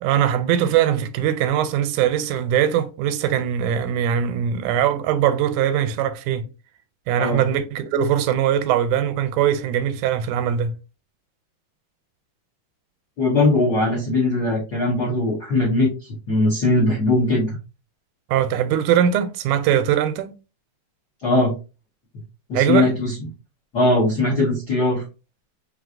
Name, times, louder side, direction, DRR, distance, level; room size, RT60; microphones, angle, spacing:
voice 1, 0.0-6.5 7.1-10.7 18.3-20.4 22.5-22.9, right 9 dB, 85° right, 2.0 m, -21 dB
voice 2, 13.2-17.6 21.2-21.5 22.5-23.1 23.7-25.0, left 2 dB, 55° left, 1.1 m, -20 dB
4.7 x 3.3 x 2.5 m
omnidirectional pair, 3.5 m